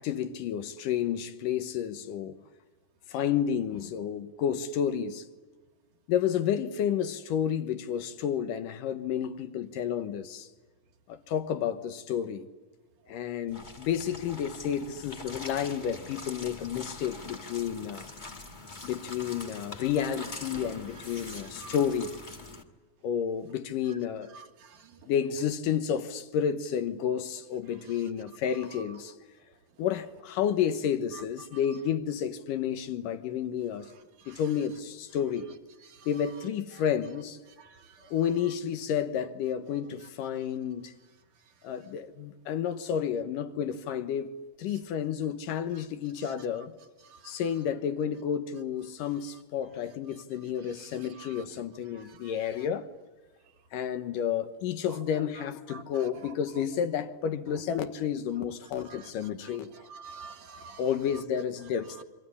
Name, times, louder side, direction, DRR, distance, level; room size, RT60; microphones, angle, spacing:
voice 1, 0.0-2.4 3.1-5.2 6.1-10.5 11.1-12.5 13.1-18.1 18.8-22.2 23.0-24.3 25.1-29.1 29.8-33.9 34.3-35.5 36.1-37.4 38.1-40.9 41.6-44.3 44.6-46.7 47.2-52.9 53.7-59.7 60.8-62.0, left 8 dB, 80° left, 2.8 m, -31 dB
sound 1, 13.5-22.6, left 2 dB, 40° left, 0.6 m, -44 dB
voice 2, 24.3-24.9 34.3-34.4 35.9-36.1 37.6-38.1 47.1-47.3 50.8-50.9 51.2-51.4 52.0-52.3 54.9-55.0 55.7-56.3 58.9-59.1 59.5-59.6 59.9-60.8, right 5 dB, 70° right, 3.3 m, -48 dB
28.5 x 24.0 x 8.4 m
omnidirectional pair, 3.8 m